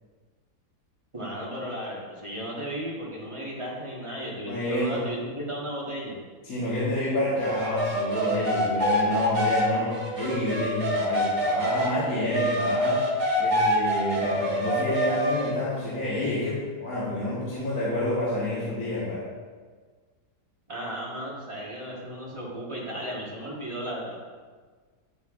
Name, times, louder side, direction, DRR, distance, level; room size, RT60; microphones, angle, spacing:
voice 1, 1.1-6.2 20.7-24.2, equal, 20° right, -5 dB, 1.2 m, -35 dB
voice 2, 4.5-5.0 6.4-13.0 13.4-19.2, left 1 dB, 60° left, -9 dB, 1.7 m, -29 dB
sound 1, 7.4-11.9 12.3-15.5, equal, 45° right, 1.7 m, -25 dB
11.5 x 4.4 x 2.4 m, 1.5 s
omnidirectional pair, 1.8 m